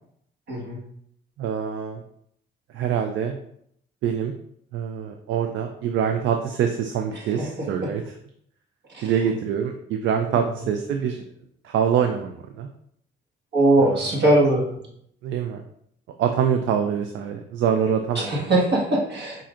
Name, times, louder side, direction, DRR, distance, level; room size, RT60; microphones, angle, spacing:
voice 1, 0.5-0.8 7.2-7.9 8.9-9.1 10.3-10.5 13.5-14.7 18.2-19.4, right 1 dB, 60° right, -2 dB, 1.6 m, -21 dB
voice 2, 1.4-2.0 2.7-3.4 4.0-4.3 4.7-8.0 9.0-11.2 11.6-12.7 13.8-14.2 15.2-15.6 16.2-18.5, right 8 dB, 80° right, 6 dB, 0.5 m, -25 dB
5.7 x 3.7 x 2.5 m, 0.69 s
cardioid pair, 90°, 20 cm